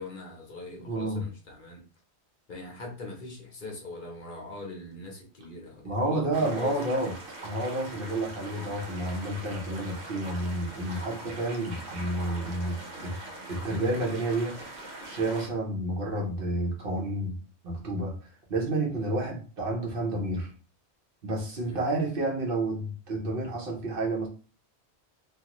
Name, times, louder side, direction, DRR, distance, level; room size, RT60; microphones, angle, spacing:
voice 1, 0.0-1.8 2.5-6.9 18.9-19.1 21.6-22.0, left 2 dB, 50° left, -1 dB, 0.8 m, -41 dB
voice 2, 0.8-1.3 5.8-7.1 7.4-13.2 13.5-17.3 17.6-18.2 18.5-20.5 21.2-24.3, right 2 dB, 60° right, 0 dB, 0.9 m, -30 dB
sound 1, 6.3-15.5, right 2 dB, 85° right, 1.0 m, -42 dB
2.4 x 2.4 x 2.9 m, 0.38 s
omnidirectional pair, 1.1 m